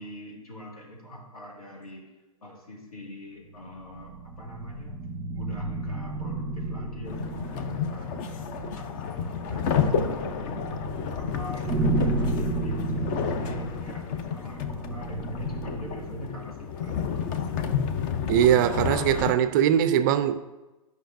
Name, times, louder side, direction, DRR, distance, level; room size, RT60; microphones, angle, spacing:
voice 1, 0.0-2.1 2.4-5.0 5.3-10.7 11.2-17.2, equal, 90° left, 2.0 m, -43 dB
sound 1, 3.6-16.2, right 2 dB, ahead, 1.5 m, -32 dB
sound 2, 7.0-19.3, left 7 dB, 35° left, 0.5 m, -31 dB
voice 2, 18.3-20.4, right 10 dB, 35° right, 0.4 m, -21 dB
9.9 x 5.3 x 2.6 m
hypercardioid pair, 125°, 18 cm